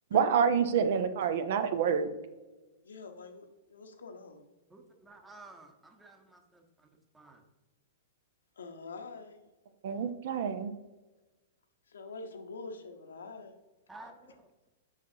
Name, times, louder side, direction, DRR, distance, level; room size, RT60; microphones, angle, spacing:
voice 1, 0.1-2.1 9.8-10.7, right 7 dB, 55° right, 11 dB, 0.5 m, -27 dB
voice 2, 2.8-4.4 8.6-9.4 11.9-13.5, left 3 dB, 70° left, 6 dB, 0.8 m, -45 dB
voice 3, 4.7-6.9 7.1-7.4 13.9-14.5, right 2 dB, 10° right, 3 dB, 0.9 m, -53 dB
7.3 x 5.6 x 2.7 m, 1.1 s
figure-of-eight pair, 105°, 0 cm